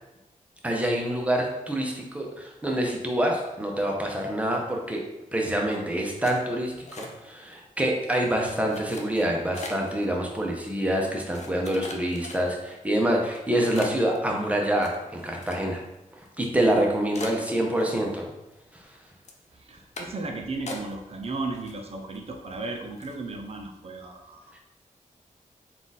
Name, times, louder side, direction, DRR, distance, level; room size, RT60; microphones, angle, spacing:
voice 1, 0.6-5.0 5.3-15.8 16.4-18.3, right 1 dB, 10° right, 0 dB, 0.7 m, -26 dB
sound 1, 6.2-7.5 7.8-8.2 8.7-10.0 10.6-10.7 11.3-12.7 13.2-13.4 13.7-15.9 16.2-16.3 16.7-16.8 17.1-18.2 18.5-18.9 19.2-19.4 19.9-20.3 20.7-21.2 21.5-22.2 22.5-22.6 23.0-23.2, left 3 dB, 55° left, 0.6 m, -41 dB
voice 2, 19.5-24.4, right 3 dB, 45° right, 3 dB, 0.5 m, -35 dB
3.8 x 2.4 x 4.0 m, 0.97 s
wide cardioid pair, 120°, 14 cm